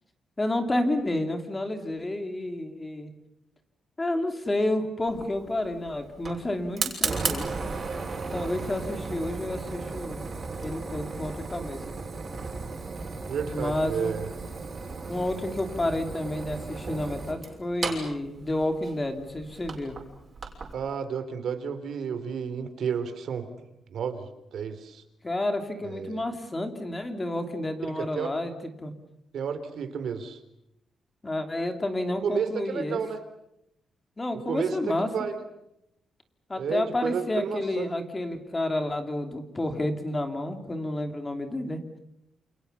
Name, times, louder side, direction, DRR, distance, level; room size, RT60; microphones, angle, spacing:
voice 1, 0.4-3.1 4.0-7.4 8.3-10.3 10.6-11.8 13.5-14.2 15.1-20.0 25.2-28.5 28.8-28.9 31.2-33.0 34.2-35.1 36.5-41.8, left 1 dB, 15° left, 6 dB, 2.9 m, -30 dB
Fire, 5.1-20.7, right 4 dB, 30° right, 6.3 m, -35 dB
voice 2, 13.3-14.3 20.7-25.0 25.8-26.2 27.9-28.3 29.3-30.4 32.2-33.2 34.5-35.4 36.6-37.9, right 6 dB, 65° right, 10 dB, 3.4 m, -32 dB
29.0 x 28.5 x 6.9 m, 0.82 s
wide cardioid pair, 160°, 0 cm